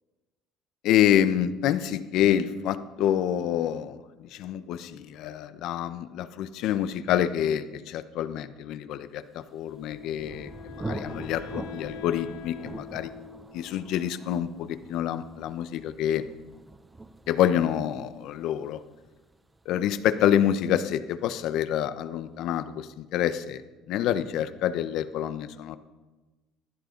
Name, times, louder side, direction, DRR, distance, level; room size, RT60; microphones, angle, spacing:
voice 1, 0.8-12.6 12.9-13.1 13.5-16.2 17.3-18.8 19.7-23.6 23.9-25.8, left 10 dB, 65° left, 12 dB, 1.0 m, -27 dB
Thunder, 9.5-21.0, right 2 dB, 10° right, 0.7 m, -44 dB
Wind instrument woodwind instrument, 9.6-14.7, left 9 dB, 90° left, 1.2 m, -45 dB
22.0 x 16.0 x 4.0 m, 1.2 s
cardioid pair, 145°, 0 cm